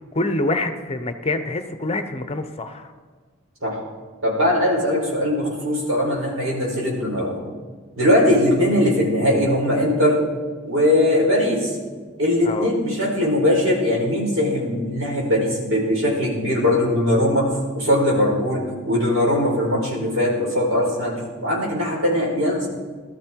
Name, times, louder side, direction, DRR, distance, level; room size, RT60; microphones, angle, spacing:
voice 1, 0.1-2.9 12.4-12.7, left 2 dB, 30° left, 9 dB, 0.8 m, -25 dB
voice 2, 4.2-7.4 8.0-10.2 10.6-11.7 12.2-17.5 17.7-21.1 21.4-22.7, left 1 dB, 75° right, -2 dB, 4.8 m, -20 dB
19.0 x 13.0 x 4.6 m, 1.5 s
head